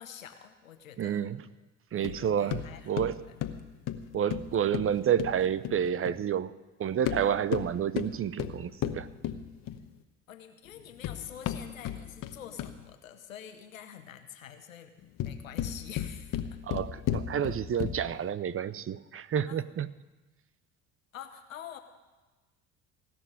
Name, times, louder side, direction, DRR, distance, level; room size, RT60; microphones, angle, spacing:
voice 1, 0.0-1.3 2.0-3.0 3.3-3.7 10.3-14.9 15.2-16.6 19.5-19.6 21.1-21.8, left 9 dB, 90° left, 8 dB, 1.0 m, -47 dB
voice 2, 1.0-1.4 1.9-3.2 4.1-6.5 6.8-9.1 16.7-19.9, right 9 dB, 35° right, 17 dB, 0.7 m, -29 dB
sound 1, 2.0-6.2 6.9-10.0 10.7-12.9 15.0-18.2, left 11 dB, 55° left, 1.1 m, -35 dB
17.0 x 6.2 x 9.8 m, 1.2 s
hypercardioid pair, 60°, 39 cm